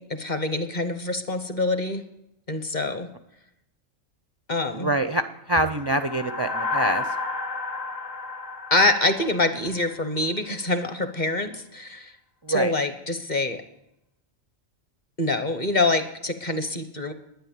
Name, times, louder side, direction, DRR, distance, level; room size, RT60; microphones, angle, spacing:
voice 1, 0.0-2.0 2.5-3.1 4.5-4.9 8.7-12.1 12.5-13.6 15.2-17.1, left 2 dB, 40° left, 9 dB, 1.1 m, -25 dB
voice 2, 4.8-5.2 5.5-7.1 12.4-12.7, right 1 dB, 45° right, 9 dB, 0.3 m, -24 dB
sound 1, 5.7-10.2, left 3 dB, 75° left, 1.9 m, -32 dB
11.5 x 9.9 x 7.2 m, 0.85 s
omnidirectional pair, 1.3 m